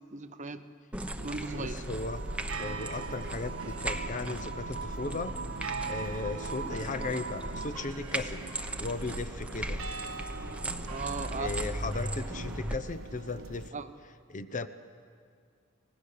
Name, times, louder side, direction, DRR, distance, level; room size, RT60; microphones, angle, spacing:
voice 1, 0.1-0.7 1.2-1.8 10.9-11.6 13.7-13.9, right 4 dB, 35° right, 11 dB, 0.8 m, -37 dB
sound 1, 0.9-12.8, right 1 dB, 5° right, 0.9 m, -38 dB
sound 2, 1.2-13.7, right 4 dB, 85° right, 1.0 m, -43 dB
voice 2, 1.5-2.2 2.6-5.3 5.8-8.4 8.8-9.8 11.3-13.8 14.3-14.7, left 3 dB, 40° left, 12 dB, 0.7 m, -36 dB
sound 3, 1.9-7.8, right 4 dB, 65° right, 0.9 m, -42 dB
25.5 x 19.0 x 6.7 m, 2.2 s
head